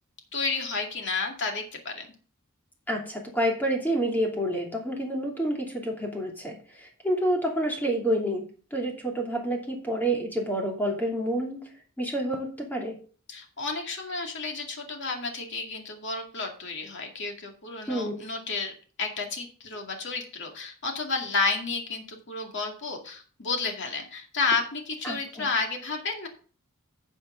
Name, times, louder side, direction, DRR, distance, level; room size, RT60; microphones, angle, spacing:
voice 1, 0.3-2.1 13.3-18.7 19.0-26.3, left 4 dB, 55° left, 2 dB, 2.2 m, -31 dB
voice 2, 2.9-8.4 8.7-11.6 12.0-13.0 17.9-18.1 25.0-25.5, right 1 dB, 10° left, -1 dB, 2.8 m, -28 dB
12.0 x 7.2 x 3.8 m, 0.41 s
head